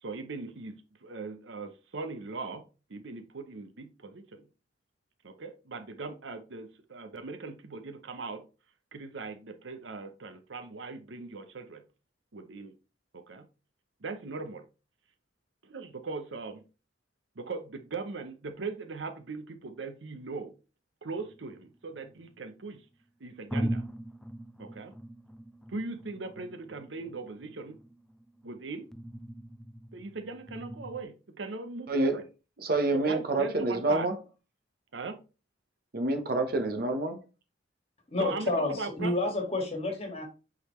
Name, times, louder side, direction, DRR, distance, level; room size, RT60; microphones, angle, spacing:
voice 1, 0.0-4.5 5.2-8.4 8.9-11.8 12.3-12.7 13.1-13.5 14.0-14.7 15.6-16.6 17.4-20.5 21.0-22.9 23.2-23.8 24.6-24.9 25.7-27.8 28.4-28.9 29.9-32.2 32.9-34.1 34.9-35.2 38.2-39.1, right 4 dB, 75° right, 0.7 m, -39 dB
sound 1, 21.2-22.4 23.0-23.1 23.5-31.0, right 1 dB, 5° left, 0.4 m, -40 dB
voice 2, 32.6-34.1 35.9-37.2, right 2 dB, 55° right, 1.0 m, -27 dB
voice 3, 38.1-40.2, left 2 dB, 35° left, 1.9 m, -30 dB
8.4 x 4.0 x 3.1 m
head